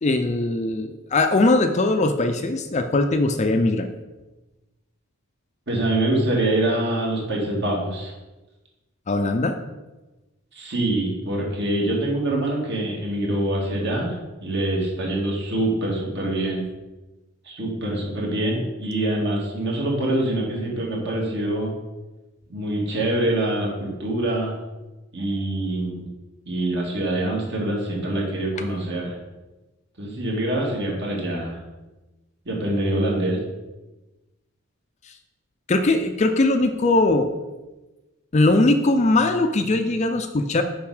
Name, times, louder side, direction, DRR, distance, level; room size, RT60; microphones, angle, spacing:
voice 1, 0.0-3.9 9.1-9.5 35.7-37.3 38.3-40.6, left 2 dB, 30° left, 7 dB, 0.4 m, -20 dB
voice 2, 5.7-8.1 10.5-16.7 17.4-21.7 22.5-24.5 25.1-26.1 26.5-29.1 30.0-31.6 32.5-33.4, right 1 dB, 50° right, -2 dB, 2.0 m, -25 dB
6.9 x 5.3 x 4.9 m, 1.1 s
head